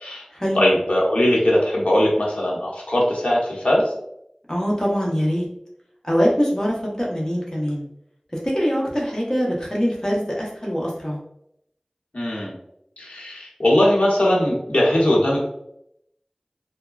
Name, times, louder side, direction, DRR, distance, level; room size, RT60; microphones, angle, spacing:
voice 1, 0.5-3.9 12.1-12.5 13.0-15.4, left 1 dB, 75° left, -5 dB, 1.0 m, -20 dB
voice 2, 4.5-5.4 6.0-7.8 8.5-11.2, equal, 30° left, -4 dB, 0.9 m, -23 dB
3.4 x 2.2 x 2.3 m, 0.76 s
wide cardioid pair, 40°, 2 cm